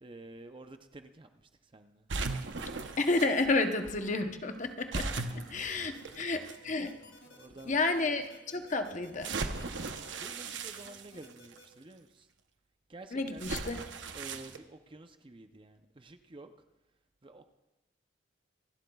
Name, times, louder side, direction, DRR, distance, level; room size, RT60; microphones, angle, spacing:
voice 1, 0.0-1.3 1.7-2.0 5.1-5.2 5.7-5.9 7.3-7.8 10.1-12.2 12.9-13.5 14.1-16.5 17.2-17.5, right 2 dB, 25° right, 7 dB, 0.6 m, -50 dB
sound 1, 2.1-3.3 4.9-6.5 7.3-7.4 9.2-11.6 13.4-14.6, right 3 dB, 70° right, 0.9 m, -37 dB
voice 2, 3.0-6.9 7.6-9.3 13.1-13.8, left 3 dB, 40° left, 6 dB, 0.8 m, -31 dB
sound 2, 5.9-11.7, left 2 dB, 65° left, 2.0 m, -56 dB
27.0 x 12.0 x 2.3 m, 1.1 s
head